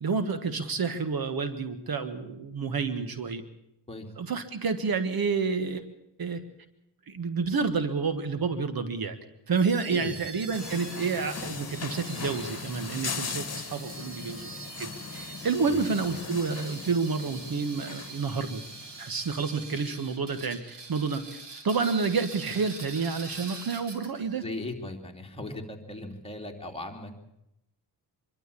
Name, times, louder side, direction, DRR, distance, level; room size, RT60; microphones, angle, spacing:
voice 1, 0.0-3.4 4.2-5.8 6.2-6.4 7.1-9.2 9.5-18.6 19.0-24.4, right 5 dB, 55° right, 10 dB, 1.6 m, -29 dB
sound 1, 9.5-24.3, right 3 dB, 80° right, 4.0 m, -44 dB
voice 2, 9.9-10.4 15.7-15.8 16.1-16.2 24.4-27.2, left 2 dB, 15° left, 1 dB, 2.9 m, -38 dB
sound 2, 10.5-19.3, left 5 dB, 35° left, 2.0 m, -39 dB
24.5 x 12.5 x 8.5 m, 0.82 s
cardioid pair, 95°, 42 cm